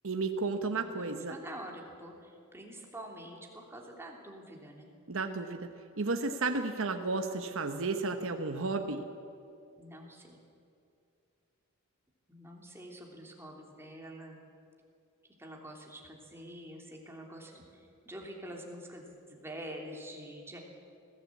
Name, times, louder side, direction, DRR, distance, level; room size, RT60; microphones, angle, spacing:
voice 1, 0.0-1.4 5.1-5.7 6.0-9.0, right 3 dB, 65° right, 5 dB, 1.1 m, -33 dB
voice 2, 0.7-4.9 9.8-10.4 12.3-14.4 15.4-20.6, right 1 dB, 10° right, 0 dB, 2.9 m, -46 dB
21.0 x 15.0 x 8.5 m, 2.5 s
head